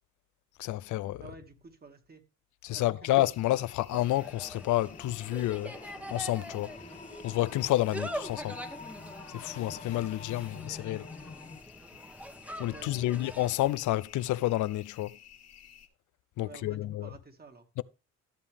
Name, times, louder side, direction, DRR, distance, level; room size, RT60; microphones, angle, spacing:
voice 1, 0.6-1.2 2.6-5.7 6.1-6.7 7.2-8.6 9.3-11.1 12.6-15.2 16.4-17.1 17.8-17.9, left 16 dB, 75° left, 0.5 m, -29 dB
voice 2, 1.2-2.2 2.7-3.1 12.7-13.2 16.4-17.7, right 4 dB, 30° right, 2.1 m, -50 dB
sound 1, 3.2-15.9, left 10 dB, 55° left, 2.0 m, -54 dB
Insect, 3.9-13.7, equal, 5° right, 1.2 m, -44 dB
sound 2, 4.8-11.6, left 4 dB, 25° left, 1.1 m, -48 dB
14.0 x 6.9 x 3.5 m
cardioid pair, 90°, 30 cm